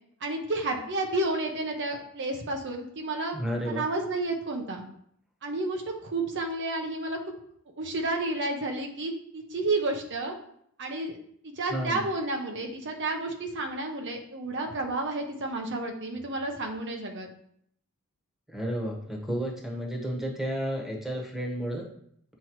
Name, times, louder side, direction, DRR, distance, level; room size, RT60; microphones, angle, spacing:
voice 1, 0.2-3.4 3.7-4.9 5.4-7.2 7.8-10.3 10.8-11.2 11.4-17.3, right 2 dB, 55° right, 3 dB, 0.9 m, -31 dB
voice 2, 3.3-3.8 11.7-12.0 18.5-21.8, equal, ahead, -1 dB, 1.2 m, -32 dB
7.7 x 4.6 x 3.1 m, 0.68 s
head